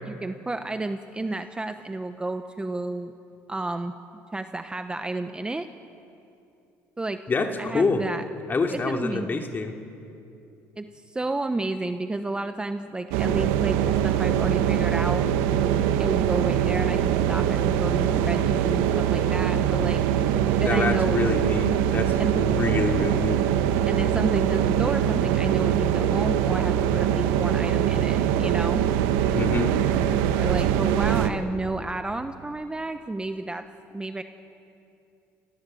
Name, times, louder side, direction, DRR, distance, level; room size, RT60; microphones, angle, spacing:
voice 1, 0.0-3.1 3.5-3.9 4.3-5.7 7.0-7.2 7.6-8.2 8.7-9.4 10.8-15.3 16.0-20.0 20.6-21.2 22.2-22.4 23.9-28.8 30.4-33.6 33.9-34.2, right 2 dB, 15° right, 8 dB, 1.0 m, -31 dB
voice 2, 7.3-8.0 8.5-9.7 20.6-23.4 29.3-29.7, left 4 dB, 30° left, 4 dB, 2.7 m, -26 dB
sound 1, 13.1-31.3, right 10 dB, 85° right, 1.3 m, -23 dB
28.5 x 18.0 x 7.7 m, 2.6 s
supercardioid pair, 90°, 7 cm